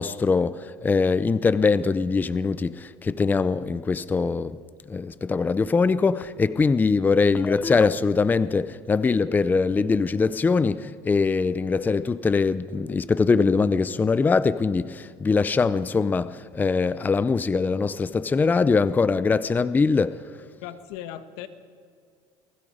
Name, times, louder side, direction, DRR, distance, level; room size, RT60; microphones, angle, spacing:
voice 1, 0.0-4.6 4.9-20.3, left 4 dB, 15° left, 0.6 m, -22 dB
voice 2, 20.6-21.5, left 11 dB, 75° left, 1.6 m, -37 dB
29.0 x 20.0 x 5.0 m
supercardioid pair, 115°, 10 cm